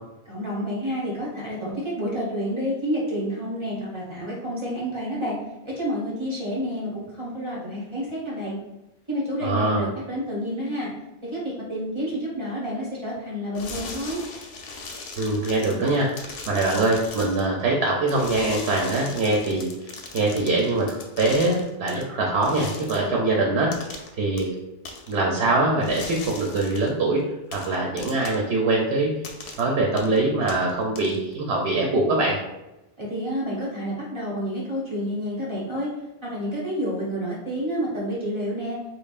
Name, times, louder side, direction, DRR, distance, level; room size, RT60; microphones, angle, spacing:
voice 1, 0.2-5.4 5.6-8.6 9.1-10.9 11.2-14.2 33.0-35.9 36.2-38.8, equal, 30° right, -7 dB, 1.0 m, -29 dB
voice 2, 9.4-9.9 15.2-24.5 25.1-27.2 27.5-29.1 29.6-32.4, right 2 dB, 80° right, -1 dB, 0.9 m, -23 dB
sound 1, 13.5-17.5 18.1-22.0 22.4-23.1 23.7-24.1 24.4-24.5 24.8-25.1 25.8-26.9 27.5-28.5 29.2-29.6 30.0-30.2 30.5-31.3, left 3 dB, 70° left, 0.8 m, -39 dB
5.2 x 2.2 x 2.4 m, 0.98 s
omnidirectional pair, 1.0 m